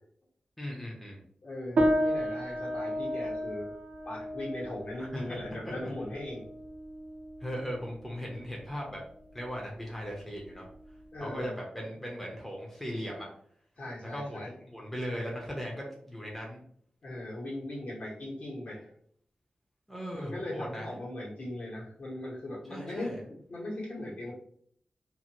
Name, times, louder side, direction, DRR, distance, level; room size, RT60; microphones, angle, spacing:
voice 1, 0.6-1.2 5.0-5.4 5.6-5.9 7.4-9.0 9.3-10.7 11.2-13.3 14.0-16.6 19.9-20.9 22.7-23.2, equal, 5° left, -2 dB, 0.6 m, -38 dB
voice 2, 1.4-3.7 4.0-6.4 11.1-11.5 13.8-14.5 17.0-18.9 20.1-24.3, left 1 dB, 60° left, -5 dB, 1.2 m, -39 dB
sound 1, 1.8-11.4, equal, 65° right, 0.5 m, -34 dB
2.6 x 2.5 x 2.9 m, 0.63 s
wide cardioid pair, 130°, 3 cm